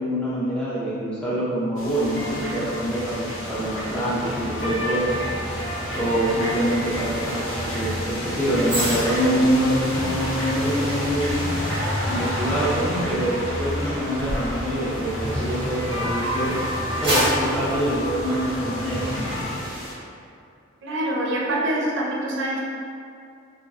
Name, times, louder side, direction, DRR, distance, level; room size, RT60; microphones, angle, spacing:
voice 1, 0.0-5.2 5.9-11.5 12.0-16.5 17.0-19.3, equal, 5° left, -10 dB, 0.5 m, -25 dB
sound 1, 1.8-19.9, left 1 dB, 85° left, 0.6 m, -35 dB
sound 2, 1.9-19.5, equal, 60° left, 1.1 m, -30 dB
sound 3, 8.6-16.0 16.5-18.9 19.2-19.4, equal, 30° right, 0.7 m, -31 dB
voice 2, 20.8-22.6, right 1 dB, 65° right, -4 dB, 0.5 m, -25 dB
2.8 x 2.4 x 2.4 m, 2.5 s
head